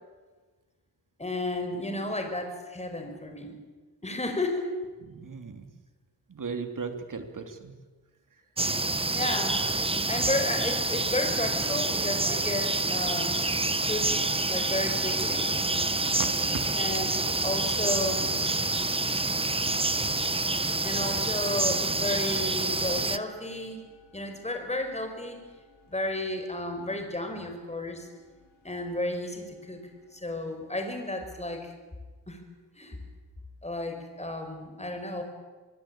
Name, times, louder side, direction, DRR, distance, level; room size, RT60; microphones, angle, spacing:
voice 1, 1.2-3.5 4.0-4.7 9.1-9.6 10.1-13.4 13.8-14.1 14.5-15.5 16.8-17.1 17.4-18.3 20.8-23.8 24.1-25.4 25.9-28.1 28.6-29.8 30.1-31.7 32.3-32.4 32.8-33.0 33.6-35.2, left 1 dB, 15° left, 5 dB, 5.0 m, -32 dB
voice 2, 5.0-5.7 6.3-7.7 16.0-16.3 16.5-16.6, right 5 dB, 45° right, 7 dB, 3.0 m, -37 dB
sound 1, 8.6-23.2, right 2 dB, 15° right, 0.9 m, -27 dB
sound 2, 14.1-30.2, left 2 dB, 90° left, 6.6 m, -52 dB
25.5 x 21.5 x 8.8 m, 1.3 s
wide cardioid pair, 125°, 43 cm